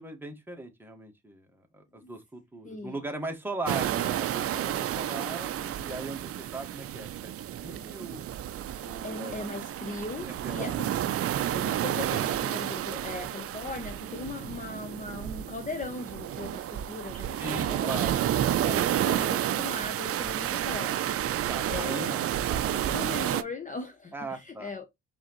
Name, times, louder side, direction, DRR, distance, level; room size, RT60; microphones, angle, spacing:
voice 1, 0.0-8.2 8.8-9.3 10.3-10.8 17.4-18.2 18.5-18.8 21.5-22.9 24.1-24.7, right 2 dB, 5° right, 1.5 m, -39 dB
voice 2, 2.6-3.0 9.0-10.9 11.5-18.1 18.7-21.0 21.7-22.2 22.9-24.9, left 3 dB, 25° left, 0.8 m, -39 dB
sound 1, 3.7-23.4, right 11 dB, 50° right, 0.5 m, -30 dB
4.8 x 3.7 x 3.0 m
cardioid pair, 90°, 30 cm